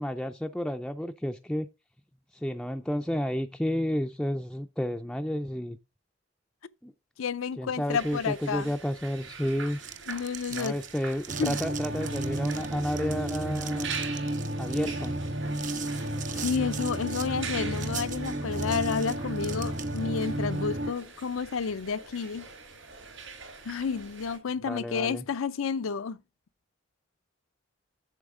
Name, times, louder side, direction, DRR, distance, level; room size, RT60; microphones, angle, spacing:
voice 1, 0.0-1.7 2.3-5.8 6.8-6.9 7.6-9.8 10.5-13.9 14.6-15.2 24.7-25.3, equal, 5° left, 0.3 m, -31 dB
voice 2, 7.2-8.7 10.1-10.8 11.4-11.6 15.8-16.1 16.3-22.5 23.6-26.2, left 5 dB, 85° left, 0.5 m, -31 dB
sound 1, 7.9-24.4, right 5 dB, 75° right, 4.3 m, -44 dB
sound 2, 9.7-20.2, right 9 dB, 40° right, 0.8 m, -42 dB
sound 3, 11.3-20.9, right 1 dB, 55° right, 1.2 m, -32 dB
8.3 x 7.1 x 3.6 m
head